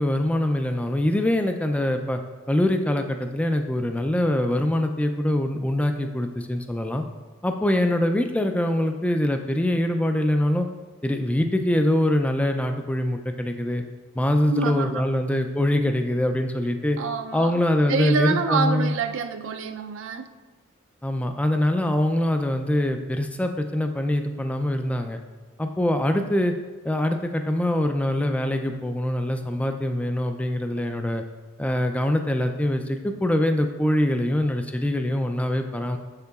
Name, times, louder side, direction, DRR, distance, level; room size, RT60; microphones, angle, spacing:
voice 1, 0.0-2.2 2.5-7.0 7.4-10.7 11.0-13.8 14.2-17.0 17.3-18.9 21.0-25.2 25.6-26.5 26.8-31.2 31.6-36.0, left 1 dB, 5° left, 6 dB, 0.3 m, -23 dB
voice 2, 14.5-15.1 17.0-17.6 17.9-20.3, right 5 dB, 65° right, 8 dB, 0.4 m, -26 dB
7.3 x 6.6 x 2.3 m, 1.3 s
head